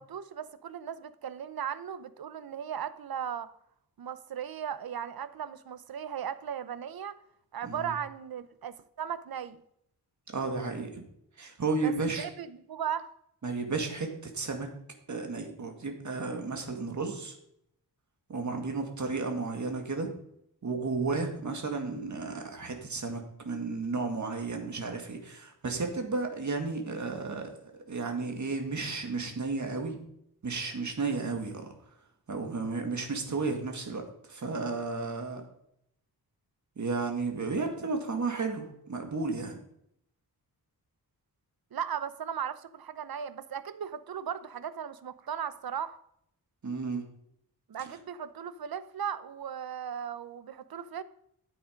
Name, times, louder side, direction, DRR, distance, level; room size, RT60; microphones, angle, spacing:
voice 1, 0.0-3.5 4.0-7.1 7.5-9.6 11.8-13.1 41.7-46.0 47.7-51.0, right 8 dB, 65° right, 14 dB, 0.7 m, -37 dB
voice 2, 7.6-7.9 10.3-11.0 11.4-12.3 13.4-14.7 15.1-17.3 18.3-20.1 20.6-30.0 30.4-31.7 32.3-34.0 34.3-35.4 36.8-39.6 46.6-47.0, right 3 dB, 50° right, 4 dB, 2.1 m, -33 dB
13.5 x 7.8 x 5.1 m, 0.75 s
wide cardioid pair, 180°, 39 cm